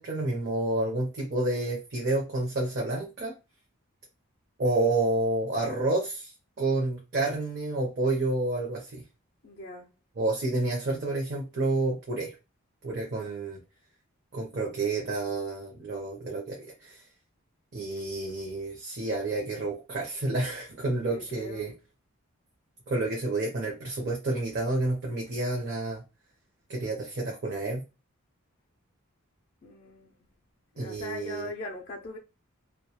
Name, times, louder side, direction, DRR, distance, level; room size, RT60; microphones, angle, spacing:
voice 1, 0.0-3.4 4.6-6.3 6.6-9.0 10.2-12.3 12.8-13.6 14.3-17.0 17.7-21.7 22.9-26.0 26.7-27.8 30.8-31.5, right 2 dB, 50° right, 0.6 m, -29 dB
voice 2, 9.4-9.9 21.1-21.7 29.6-30.2 30.8-32.2, left 2 dB, 40° left, 0.3 m, -40 dB
2.2 x 2.1 x 2.8 m
head